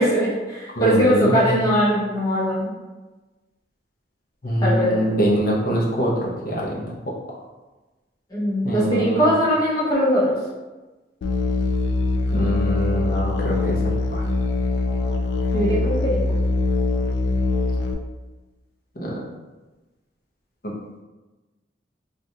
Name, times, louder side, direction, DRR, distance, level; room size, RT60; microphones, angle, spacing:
voice 1, 0.0-2.7 4.6-5.3 8.3-10.3 15.5-16.2, equal, 20° left, -8 dB, 0.9 m, -21 dB
voice 2, 0.8-1.7 4.4-6.9 8.6-9.3 12.3-13.8 14.1-14.2 19.0-19.2 20.6-20.7, equal, 45° left, -4 dB, 0.7 m, -24 dB
Musical instrument, 11.2-17.9, left 3 dB, 70° left, 0.3 m, -22 dB
3.3 x 2.5 x 2.7 m, 1.2 s
head